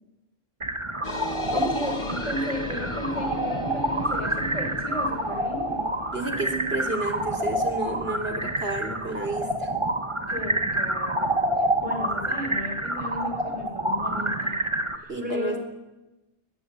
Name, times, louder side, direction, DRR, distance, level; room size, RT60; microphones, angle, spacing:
sound 1, 0.6-15.0, right 1 dB, 25° right, 1.9 m, -28 dB
sound 2, 1.0-12.0, left 3 dB, 80° left, 2.5 m, -39 dB
voice 1, 1.5-5.9 10.3-14.6 15.0-15.6, left 1 dB, 30° left, 2 dB, 6.7 m, -34 dB
voice 2, 6.1-9.7 15.1-15.6, right 2 dB, 60° right, 6 dB, 3.9 m, -31 dB
23.0 x 21.5 x 8.5 m, 1.0 s
omnidirectional pair, 1.2 m